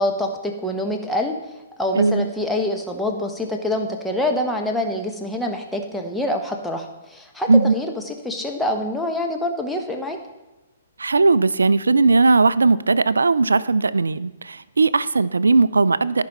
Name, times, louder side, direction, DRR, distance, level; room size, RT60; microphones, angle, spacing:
voice 1, 0.0-1.3 1.8-10.2, left 1 dB, 5° left, 2 dB, 0.9 m, -25 dB
voice 2, 1.9-2.3 7.5-7.8 11.0-16.2, right 3 dB, 75° right, 17 dB, 0.3 m, -18 dB
14.5 x 5.3 x 3.0 m, 1.1 s
figure-of-eight pair, 120°, 0 cm